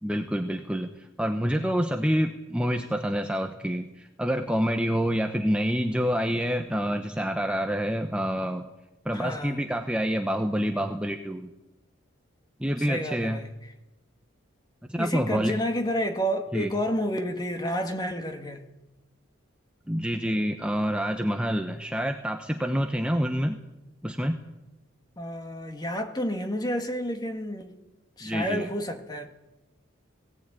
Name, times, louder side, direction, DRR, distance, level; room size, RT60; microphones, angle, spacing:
voice 1, 0.0-8.6 9.0-11.5 12.6-13.4 14.9-15.6 16.5-16.7 19.9-23.6 24.0-24.4 28.2-28.7, equal, 5° right, 0.9 m, -27 dB
voice 2, 9.1-9.6 12.8-13.5 15.0-18.7 25.2-27.7 28.2-29.3, equal, 20° left, 1.9 m, -30 dB
18.0 x 18.0 x 9.1 m
head